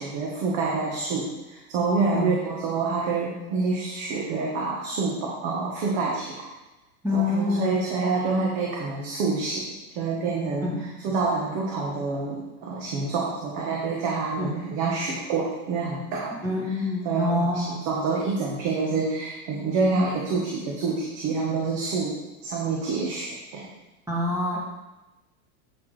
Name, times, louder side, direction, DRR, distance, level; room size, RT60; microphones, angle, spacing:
voice 1, 0.0-6.5 7.1-9.7 9.9-16.4 17.0-22.1 22.4-23.6, right 4 dB, 50° right, -2 dB, 1.4 m, -27 dB
voice 2, 7.0-7.7 10.6-10.8 14.4-14.5 16.4-17.8 24.1-24.6, left 2 dB, 5° right, -4 dB, 1.8 m, -26 dB
8.4 x 5.9 x 3.3 m, 1.0 s
supercardioid pair, 135°, 43 cm